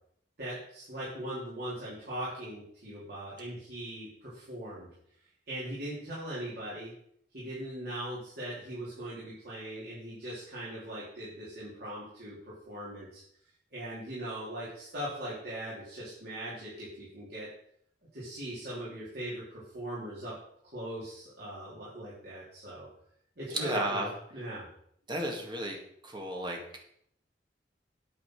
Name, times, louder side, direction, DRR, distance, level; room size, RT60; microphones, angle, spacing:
voice 1, 0.4-4.9 5.5-6.9 7.3-12.4 12.7-13.2 13.7-17.5 18.1-20.4 20.7-22.9 23.4-24.1 24.3-24.7, right 1 dB, 60° right, -9 dB, 3.8 m, -40 dB
voice 2, 23.5-24.1 25.1-25.8 26.0-26.6, right 1 dB, 25° right, 1 dB, 2.1 m, -33 dB
9.1 x 9.0 x 4.9 m, 0.69 s
head